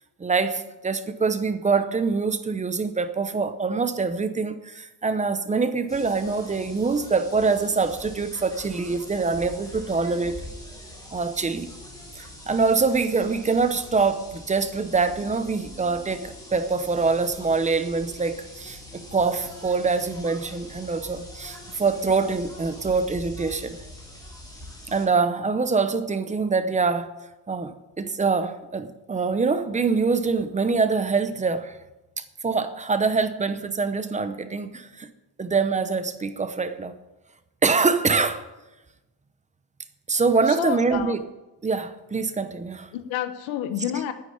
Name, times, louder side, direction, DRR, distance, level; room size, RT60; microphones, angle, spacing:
voice 1, 0.2-10.4 11.1-11.7 12.2-23.8 24.9-27.1 27.5-31.8 32.4-35.1 35.4-37.0 37.6-38.4 40.1-41.2 41.6-42.9, right 4 dB, 15° right, 11 dB, 0.7 m, -24 dB
sound 1, 5.9-25.1, left 1 dB, 10° left, 3.7 m, -43 dB
voice 2, 40.5-41.2 42.9-44.1, left 11 dB, 85° left, 9 dB, 1.2 m, -29 dB
9.7 x 9.4 x 8.6 m, 1.0 s
cardioid pair, 145°, 45 cm